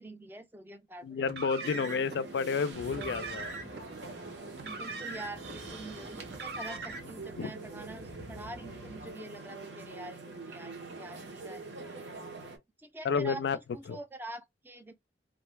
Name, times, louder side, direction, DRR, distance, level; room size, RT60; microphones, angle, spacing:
voice 1, 0.0-1.2 1.7-1.8 4.6-11.6 12.8-13.5 13.7-14.9, right 2 dB, 10° right, 0.4 m, -45 dB
voice 2, 1.0-3.6 7.4-7.5 13.0-13.6 13.9-14.0, left 5 dB, 75° left, 0.3 m, -31 dB
Car, 1.2-2.2 2.9-3.8 4.5-5.6 6.3-7.2, right 3 dB, 65° right, 0.6 m, -41 dB
sound 1, 1.6-12.6, right 3 dB, 90° right, 0.9 m, -45 dB
sound 2, 2.7-9.1, left 1 dB, 25° left, 0.7 m, -51 dB
2.5 x 2.2 x 3.2 m
head